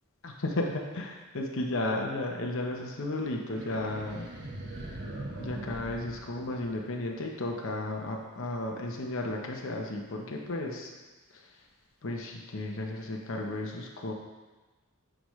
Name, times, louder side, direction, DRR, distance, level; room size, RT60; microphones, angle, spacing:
voice 1, 0.2-4.3 5.4-10.9 12.0-14.1, left 2 dB, 65° left, 0 dB, 0.9 m, -34 dB
sound 1, 3.6-7.0, right 1 dB, 55° right, 1.3 m, -41 dB
10.0 x 5.0 x 3.2 m, 1.2 s
head